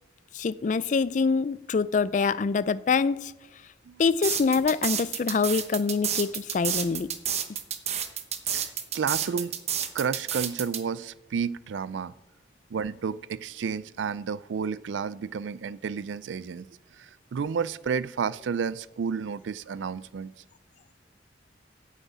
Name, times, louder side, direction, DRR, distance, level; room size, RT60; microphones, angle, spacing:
voice 1, 0.3-3.3 4.0-7.1, left 5 dB, 40° left, 0.3 m, -25 dB
sound 1, 4.2-10.8, right 9 dB, 35° right, 0.9 m, -29 dB
voice 2, 8.5-9.5 9.9-12.1 12.7-16.7 17.0-20.3, right 6 dB, 80° right, 0.4 m, -31 dB
9.5 x 7.3 x 8.3 m
head